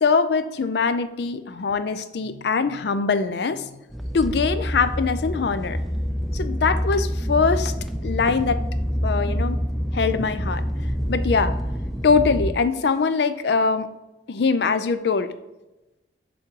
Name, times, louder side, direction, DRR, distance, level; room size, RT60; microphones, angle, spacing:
voice 1, 0.0-3.8 4.1-5.8 6.3-7.7 8.0-8.6 9.0-9.6 9.9-10.6 11.1-11.5 12.0-13.9 14.3-15.3, left 5 dB, 65° left, 11 dB, 0.4 m, -22 dB
sound 1, 3.9-12.5, equal, ahead, 0.3 m, -26 dB
7.0 x 3.7 x 4.7 m, 1.0 s
head